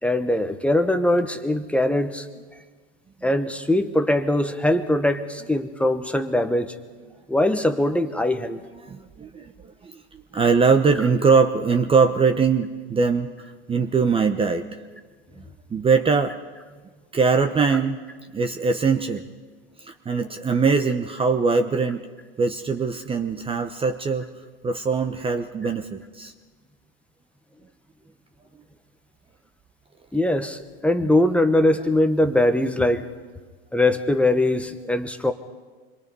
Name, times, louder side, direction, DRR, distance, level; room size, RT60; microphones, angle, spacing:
voice 1, 0.0-2.3 3.2-6.7 7.3-8.6 17.7-17.8 30.1-33.1 33.7-35.3, left 1 dB, 5° left, 8 dB, 1.2 m, -21 dB
voice 2, 8.4-13.3 13.7-14.8 15.7-16.4 17.1-18.0 18.3-19.2 19.8-22.1 22.4-24.3 24.6-26.3 31.0-31.2 31.8-31.9 32.2-32.3, right 5 dB, 15° right, 7 dB, 1.0 m, -22 dB
26.5 x 22.0 x 5.5 m, 1.4 s
hypercardioid pair, 110°, 31 cm